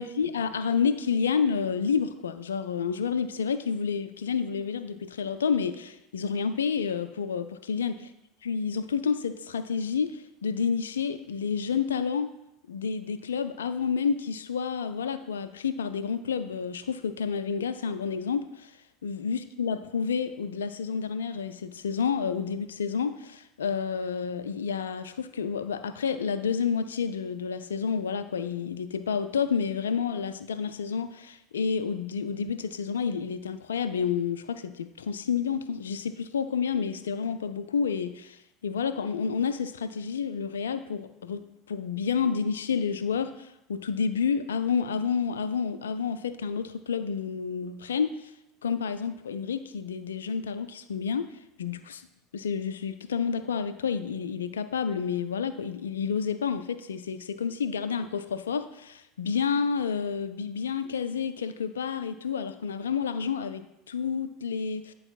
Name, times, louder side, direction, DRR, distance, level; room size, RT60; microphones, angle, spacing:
voice 1, 0.0-8.0 8.5-12.3 12.7-18.7 19.0-48.3 48.6-51.3 51.6-52.0 52.3-64.9, left 6 dB, 75° left, 12 dB, 0.3 m, -29 dB
9.7 x 4.8 x 2.3 m, 0.86 s
figure-of-eight pair, 70°, 0 cm